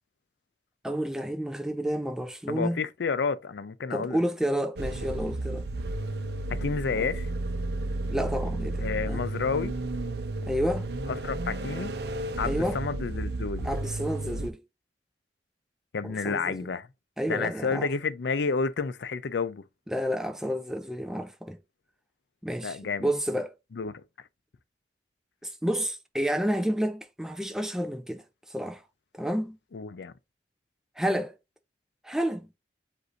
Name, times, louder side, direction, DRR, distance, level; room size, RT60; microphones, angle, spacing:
voice 1, 0.8-2.8 3.9-5.6 7.0-7.1 8.1-9.2 10.4-10.9 12.4-12.8 13.6-14.6 16.0-16.6 17.2-17.9 19.9-21.6 22.4-23.5 25.4-28.2 28.5-28.8 29.1-29.6 31.0-31.3 32.0-32.5, equal, 5° right, 0.4 m, -30 dB
voice 2, 2.5-4.2 6.5-7.3 8.8-9.7 11.1-11.9 12.4-13.7 15.9-16.9 17.3-19.6 22.6-23.1 23.7-24.0 29.7-30.1, left 5 dB, 80° left, 0.5 m, -30 dB
sound 1, 4.8-14.5, right 2 dB, 65° right, 0.5 m, -32 dB
7.9 x 2.6 x 2.5 m
head